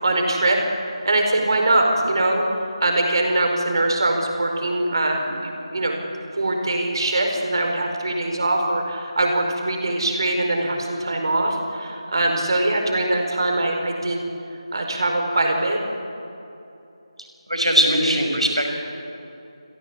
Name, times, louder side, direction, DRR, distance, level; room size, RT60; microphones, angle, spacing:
voice 1, 0.0-0.6 1.0-2.4 2.8-6.0 6.3-14.2 14.7-15.8, right 2 dB, 50° right, 3 dB, 4.9 m, -22 dB
voice 2, 17.5-18.7, equal, 85° right, 3 dB, 5.9 m, -20 dB
28.0 x 17.0 x 8.4 m, 2.8 s
figure-of-eight pair, 160°, 3 cm